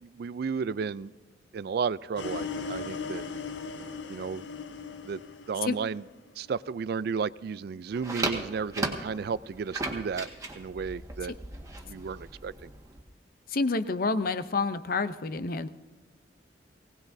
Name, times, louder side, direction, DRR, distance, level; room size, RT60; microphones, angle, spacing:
voice 1, 0.0-1.1 1.5-3.2 4.1-4.5 5.0-5.2 5.5-6.0 6.4-10.3 10.5-11.3 11.9-12.7, right 5 dB, 60° right, 18 dB, 0.3 m, -33 dB
sound 1, 2.2-6.3, left 5 dB, 90° left, 0.9 m, -38 dB
sound 2, 7.9-13.0, right 2 dB, 20° right, 1.6 m, -36 dB
voice 2, 13.5-15.7, left 3 dB, 50° left, 11 dB, 0.6 m, -28 dB
20.0 x 17.5 x 2.7 m, 1.2 s
head